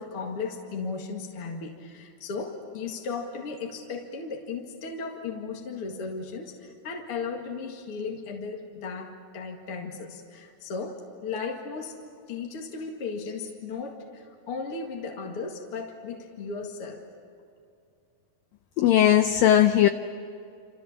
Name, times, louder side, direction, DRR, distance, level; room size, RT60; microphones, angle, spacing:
voice 1, 0.0-12.0 12.3-17.0, left 4 dB, 45° left, 1 dB, 2.3 m, -36 dB
voice 2, 18.8-19.9, left 11 dB, 75° left, 9 dB, 2.1 m, -18 dB
28.5 x 28.0 x 7.2 m, 2.5 s
omnidirectional pair, 4.7 m